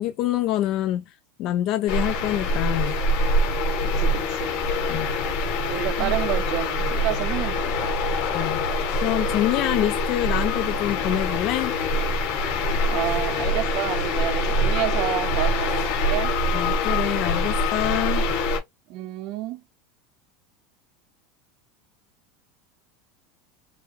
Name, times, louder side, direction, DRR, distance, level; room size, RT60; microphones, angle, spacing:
voice 1, 0.0-3.0 4.9-5.1 6.0-6.1 8.3-11.7 16.5-18.2, left 13 dB, 40° left, 0.3 m, -26 dB
sound 1, 1.9-18.6, left 1 dB, 60° left, 1.5 m, -24 dB
voice 2, 3.8-4.6 5.7-7.9 12.9-16.4 18.9-19.6, right 14 dB, 40° right, 0.4 m, -29 dB
4.7 x 2.1 x 3.2 m
supercardioid pair, 175°, 0 cm